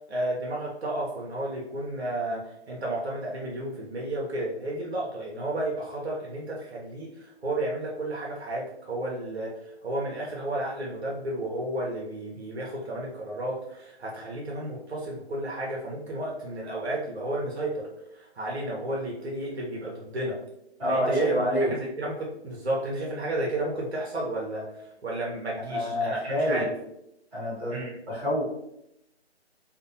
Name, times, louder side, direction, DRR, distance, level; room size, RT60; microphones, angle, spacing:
voice 1, 0.1-17.9 18.1-20.4 20.8-21.3 21.7-26.7 27.7-27.9, right 1 dB, 70° right, -3 dB, 0.8 m, -32 dB
voice 2, 20.8-21.7 25.7-26.6 27.3-27.8 28.1-28.4, equal, 20° right, -11 dB, 1.4 m, -26 dB
2.6 x 2.0 x 2.6 m, 0.81 s
figure-of-eight pair, 155°, 34 cm